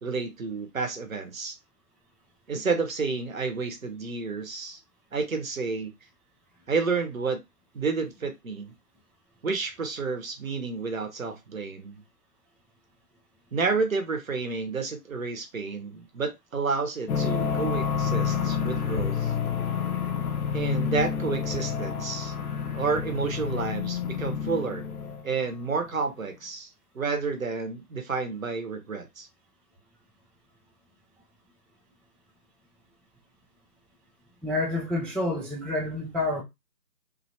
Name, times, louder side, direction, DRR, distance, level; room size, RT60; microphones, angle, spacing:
voice 1, 0.0-1.5 2.5-4.8 5.1-5.9 6.7-7.4 7.7-8.7 9.4-12.0 13.5-19.3 20.5-22.3 22.7-24.9 25.2-26.7 26.9-29.3, right 4 dB, 55° right, 0.7 m, -30 dB
sound 1, 17.1-25.3, left 7 dB, 65° left, 0.5 m, -29 dB
voice 2, 34.4-36.4, left 2 dB, ahead, 0.3 m, -28 dB
2.4 x 2.1 x 2.6 m
figure-of-eight pair, 165°, 49 cm